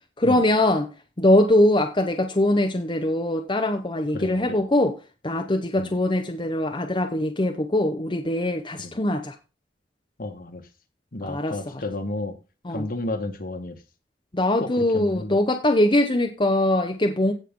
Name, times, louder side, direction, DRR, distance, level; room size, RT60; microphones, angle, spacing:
voice 1, 0.2-0.9 1.2-5.0 5.2-9.3 11.2-11.6 12.6-12.9 14.3-17.3, left 1 dB, 25° left, 0.9 m, -22 dB
voice 2, 4.1-4.6 5.8-6.0 8.8-9.0 10.2-10.6 11.1-12.3 12.7-13.8 14.6-15.4, left 2 dB, 55° left, 1.6 m, -32 dB
16.5 x 5.5 x 3.7 m
head